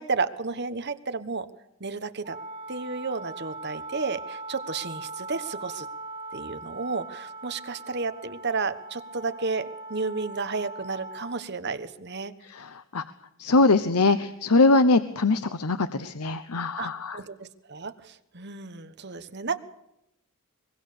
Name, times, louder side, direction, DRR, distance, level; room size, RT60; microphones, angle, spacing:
voice 1, 0.0-1.5 1.8-2.4 2.7-5.9 6.3-12.3 16.8-19.6, right 4 dB, 50° right, 11 dB, 1.3 m, -32 dB
Wind instrument woodwind instrument, 2.2-11.4, right 2 dB, 25° right, 6.7 m, -40 dB
voice 2, 12.5-13.0 13.4-17.2, left 3 dB, 90° left, 12 dB, 1.0 m, -22 dB
24.0 x 22.0 x 6.8 m, 0.85 s
head